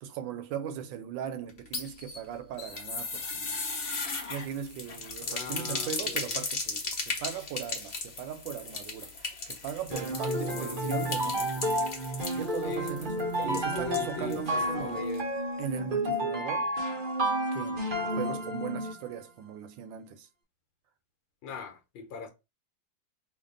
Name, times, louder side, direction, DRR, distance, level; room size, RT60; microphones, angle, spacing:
voice 1, 0.0-3.6 4.3-15.1 15.6-16.7 17.5-20.3, right 8 dB, 75° right, 1.2 m, -39 dB
sound 1, 1.5-14.5 14.7-14.8 15.1-15.2, left 4 dB, 55° left, 0.6 m, -37 dB
voice 2, 5.3-6.4 9.9-11.2 12.6-15.3 18.1-18.4 21.4-22.3, left 4 dB, 75° left, 1.4 m, -41 dB
sound 2, 9.9-19.1, right 1 dB, 55° right, 0.5 m, -31 dB
3.3 x 2.4 x 3.6 m
omnidirectional pair, 2.1 m